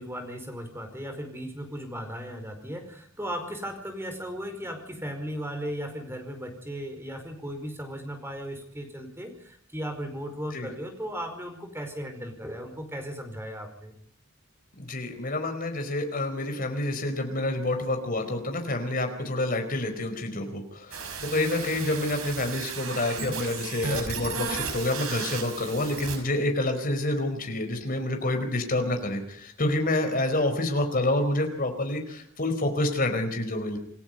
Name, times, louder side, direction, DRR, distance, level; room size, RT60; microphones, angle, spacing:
voice 1, 0.0-13.9, equal, 10° right, 5 dB, 4.9 m, -36 dB
voice 2, 14.8-33.8, left 1 dB, 45° left, 5 dB, 4.7 m, -28 dB
sound 1, 20.9-26.2, right 5 dB, 90° right, 5.9 m, -34 dB
28.0 x 17.0 x 5.5 m, 0.65 s
head